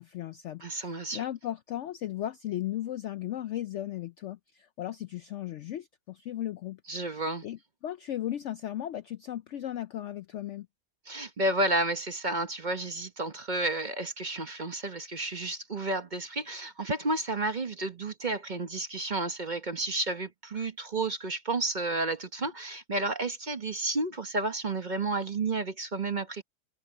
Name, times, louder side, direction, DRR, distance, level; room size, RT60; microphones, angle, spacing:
voice 1, 0.0-6.8 7.4-10.7, left 12 dB, 85° left, 0.6 m, -36 dB
voice 2, 0.6-1.2 6.9-7.4 11.1-26.4, right 2 dB, 35° right, 1.0 m, -31 dB
omnidirectional pair, 1.8 m